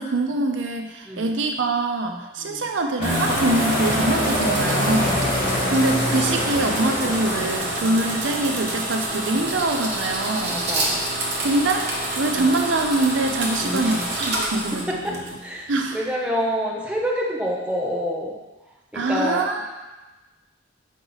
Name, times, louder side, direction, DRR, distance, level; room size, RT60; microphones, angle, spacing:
voice 1, 0.0-10.6 11.4-15.2 15.7-16.0 18.9-19.8, right 2 dB, 80° right, 4 dB, 0.6 m, -24 dB
voice 2, 2.4-2.7 9.3-9.5 10.5-11.0 12.4-12.5 13.6-14.1 14.9-15.2 15.4-18.4 18.9-19.4, equal, 5° right, -3 dB, 0.9 m, -28 dB
Sweep Down, 3.0-8.5, left 1 dB, 45° left, 1.6 m, -25 dB
sound 1, 3.0-15.6, right 1 dB, 60° right, 1.2 m, -28 dB
6.3 x 5.0 x 4.0 m, 1.1 s
head